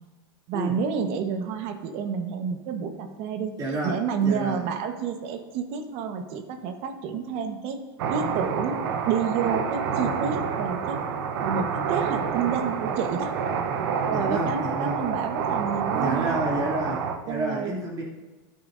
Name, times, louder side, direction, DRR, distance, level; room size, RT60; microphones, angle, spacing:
voice 1, 0.5-3.6 3.8-7.8 8.1-8.8 9.0-11.0 11.4-13.4 14.1-16.4 17.3-17.8, right 6 dB, 55° right, 7 dB, 1.3 m, -29 dB
voice 2, 3.6-4.6 14.0-15.0 15.9-18.0, right 1 dB, 30° right, -3 dB, 3.0 m, -30 dB
sound 1, 8.0-17.2, right 6 dB, 70° right, 1.0 m, -28 dB
14.0 x 9.2 x 2.7 m, 1.3 s
supercardioid pair, 125°, 12 cm